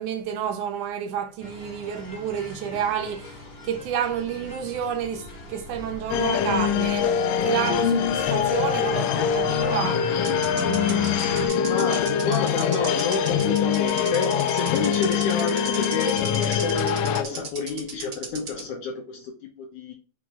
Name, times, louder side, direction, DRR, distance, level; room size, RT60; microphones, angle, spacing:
voice 1, 0.0-10.1, right 9 dB, 75° right, 2.0 m, -30 dB
sound 1, 1.4-11.5, left 3 dB, 45° left, 2.3 m, -37 dB
sound 2, 6.1-17.2, left 8 dB, 85° left, 2.3 m, -24 dB
sound 3, 6.2-7.3 7.6-7.7 9.5-9.6 10.2-18.6, right 5 dB, 40° right, 2.0 m, -36 dB
voice 2, 10.8-19.9, left 4 dB, 70° left, 2.4 m, -30 dB
6.1 x 3.9 x 4.5 m
omnidirectional pair, 3.8 m